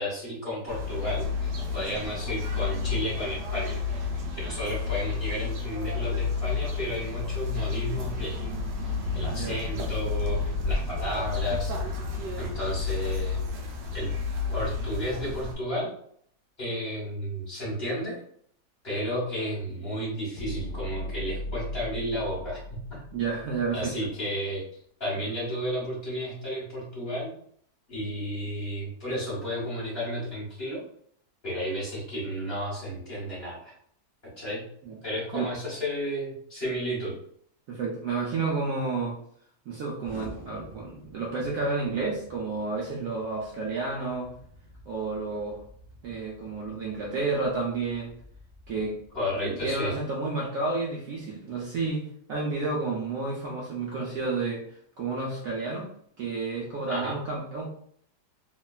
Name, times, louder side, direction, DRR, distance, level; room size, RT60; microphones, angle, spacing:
voice 1, 0.0-3.8 4.4-11.7 12.4-13.4 13.9-14.1 14.5-15.9 16.6-18.2 18.8-23.0 23.7-24.6 25.0-27.3 27.9-30.8 31.4-33.7 34.4-34.6 35.0-37.1 49.1-49.9 56.9-57.2, equal, 40° left, -7 dB, 1.2 m, -32 dB
sound 1, 0.7-15.5, left 4 dB, 80° right, 1.2 m, -31 dB
voice 2, 9.3-9.6 23.1-23.9 34.8-35.0 35.3-35.5 37.7-39.2 39.7-44.3 44.9-45.6 46.0-48.1 48.7-49.0 49.4-54.6 55.0-55.9 56.2-57.7, right 3 dB, 65° right, -4 dB, 0.9 m, -31 dB
sound 2, 9.5-13.8 20.4-24.1, left 1 dB, 70° left, 1.2 m, -39 dB
Explosion, 40.0-50.0, equal, 50° right, 0.5 m, -50 dB
3.1 x 2.2 x 2.3 m, 0.64 s
omnidirectional pair, 1.8 m